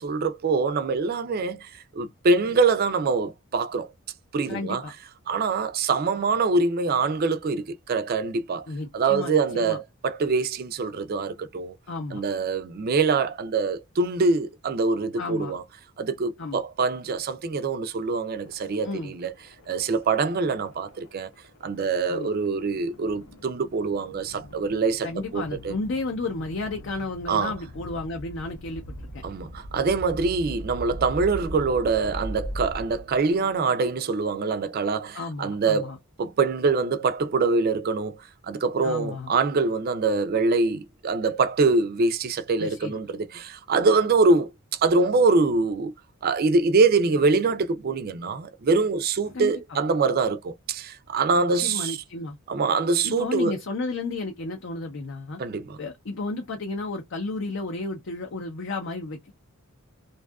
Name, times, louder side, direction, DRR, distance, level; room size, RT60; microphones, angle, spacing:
voice 1, 0.0-3.9 4.3-4.8 5.3-8.7 8.9-11.8 12.1-15.6 16.0-19.3 19.7-21.3 21.6-25.1 25.3-25.7 27.3-27.5 29.2-45.9 46.2-52.0 52.5-53.5 55.4-55.8, right 4 dB, 40° right, 0.4 m, -24 dB
voice 2, 4.5-4.9 8.7-9.8 11.9-12.2 15.2-15.6 16.4-16.6 18.8-19.1 22.1-22.3 25.0-29.2 35.1-36.0 38.8-39.3 42.6-43.0 49.3-49.8 51.4-52.4 53.0-55.4 55.8-59.3, left 3 dB, 55° left, 0.5 m, -33 dB
sound 1, 18.3-33.4, equal, 90° left, 0.8 m, -41 dB
2.6 x 2.3 x 2.2 m
head